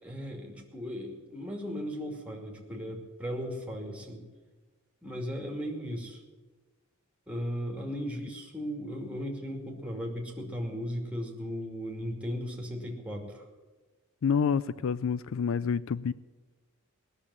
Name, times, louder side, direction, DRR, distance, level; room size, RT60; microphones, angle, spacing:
voice 1, 0.0-4.2 5.0-6.2 7.3-13.4, equal, 5° right, 2.4 m, -36 dB
voice 2, 14.2-16.1, left 6 dB, 65° left, 0.4 m, -28 dB
18.5 x 6.8 x 9.9 m
head